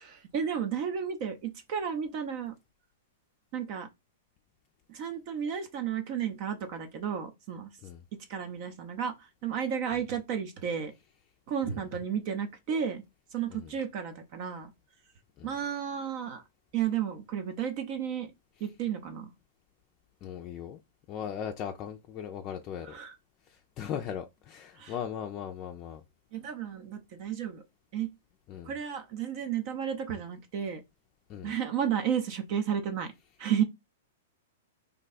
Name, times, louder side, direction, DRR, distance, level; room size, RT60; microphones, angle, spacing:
voice 1, 0.3-2.5 3.5-3.9 4.9-7.7 8.3-10.9 11.5-13.0 13.3-14.7 15.4-16.4 16.7-18.3 18.6-19.3 22.9-23.2 24.8-24.9 26.3-27.6 27.9-28.1 28.6-30.8 31.4-33.1 33.4-33.6, right 8 dB, 50° right, 0.6 m, -32 dB
voice 2, 20.2-20.8 21.1-22.9 23.4-26.0 28.5-28.8 31.3-31.5, left 8 dB, 35° left, 0.4 m, -38 dB
2.6 x 2.3 x 4.0 m
hypercardioid pair, 120°, 0 cm